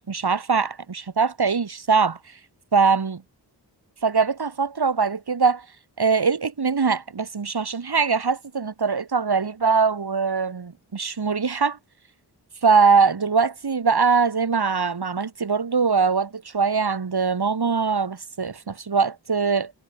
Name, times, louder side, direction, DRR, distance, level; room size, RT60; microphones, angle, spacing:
voice 1, 0.0-2.4 2.7-3.2 4.0-5.7 6.0-11.8 12.6-19.7, right 5 dB, 65° right, 4.9 m, -22 dB
cardioid pair, 45°, 41 cm